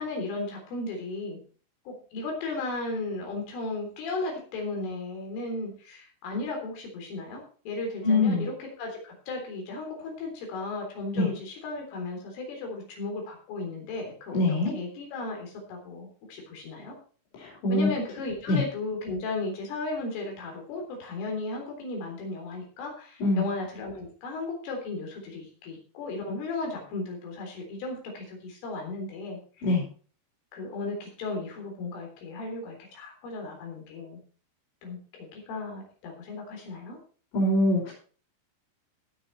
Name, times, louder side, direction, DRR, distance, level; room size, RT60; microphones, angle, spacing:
voice 1, 0.0-1.4 1.9-17.0 17.7-29.7 30.5-34.2 34.8-37.0, left 3 dB, 90° left, 2 dB, 6.2 m, -35 dB
voice 2, 8.0-8.5 11.2-11.3 14.3-14.7 17.4-17.9 18.5-18.6 23.2-23.4 29.6-29.8 37.3-37.9, left 2 dB, 65° left, -2 dB, 7.3 m, -23 dB
18.5 x 6.8 x 4.3 m, 0.40 s
omnidirectional pair, 5.5 m